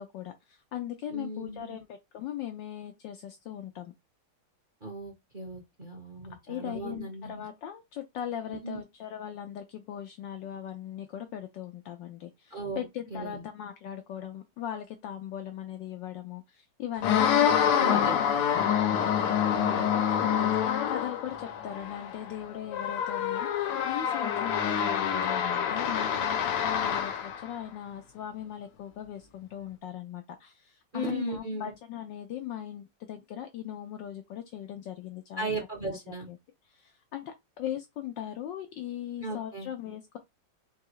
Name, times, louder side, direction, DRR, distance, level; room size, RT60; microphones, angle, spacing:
voice 1, 0.0-3.9 6.5-19.1 19.9-35.5 35.9-36.4 36.7-40.2, left 10 dB, 70° left, 1.1 m, -39 dB
voice 2, 1.1-1.8 4.8-7.4 8.6-8.8 12.5-13.4 17.4-18.1 19.4-19.9 30.9-31.7 35.4-36.3 39.2-39.7, right 2 dB, 35° right, 0.8 m, -37 dB
sound 1, 17.0-27.5, left 8 dB, 90° left, 1.7 m, -27 dB
4.6 x 2.9 x 3.1 m
omnidirectional pair, 2.4 m